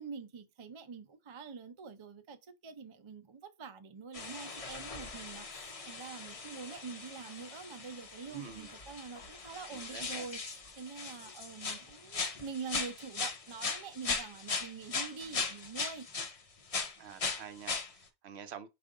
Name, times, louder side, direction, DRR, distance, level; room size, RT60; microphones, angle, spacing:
voice 1, 0.0-16.1, right 5 dB, 40° right, 0.4 m, -45 dB
sound 1, 4.1-16.4 16.7-17.9, left 4 dB, 35° left, 0.7 m, -39 dB
voice 2, 8.3-8.7 9.7-10.3 17.0-18.7, right 7 dB, 70° right, 0.9 m, -48 dB
5.1 x 2.5 x 3.7 m
omnidirectional pair, 1.2 m